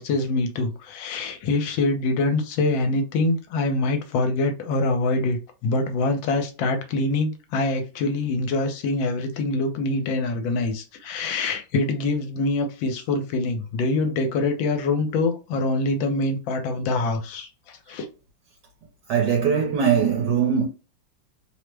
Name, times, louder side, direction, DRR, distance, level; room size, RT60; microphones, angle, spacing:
voice 1, 0.0-18.1, left 2 dB, 75° left, 1.4 m, -25 dB
voice 2, 19.1-20.7, right 7 dB, 70° right, 1.2 m, -21 dB
3.2 x 2.0 x 3.2 m
omnidirectional pair, 2.1 m